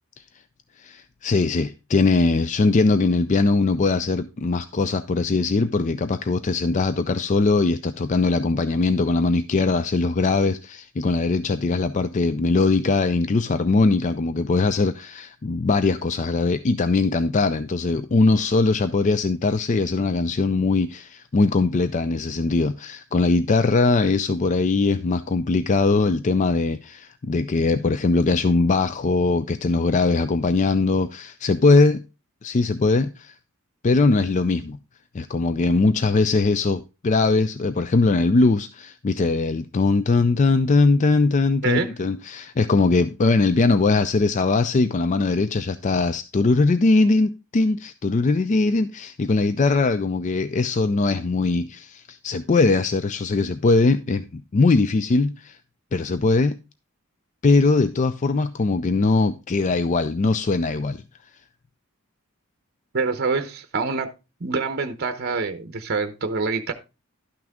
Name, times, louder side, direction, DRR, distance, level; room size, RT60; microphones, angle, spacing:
voice 1, 0.8-32.0 32.4-33.3 33.8-34.8 35.1-55.6 55.9-56.6 57.4-61.0, left 3 dB, 35° left, 0.4 m, -21 dB
voice 2, 62.9-64.1 64.4-66.7, right 4 dB, 50° right, 0.8 m, -25 dB
11.5 x 6.1 x 3.5 m
head